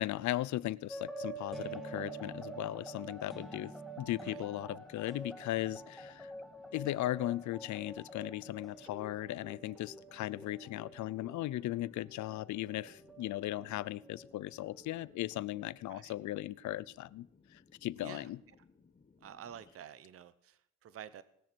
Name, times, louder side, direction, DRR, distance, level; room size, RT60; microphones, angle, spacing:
voice 1, 0.0-6.3 6.7-17.3 17.5-18.4, left 15 dB, 70° left, 21 dB, 0.5 m, -37 dB
sound 1, 0.9-15.9, right 2 dB, ahead, 1.9 m, -48 dB
sound 2, 1.5-19.7, left 4 dB, 25° left, 1.4 m, -64 dB
voice 2, 19.2-21.2, right 9 dB, 50° right, 15 dB, 0.8 m, -50 dB
19.5 x 6.6 x 6.1 m, 0.75 s
cardioid pair, 90°, 30 cm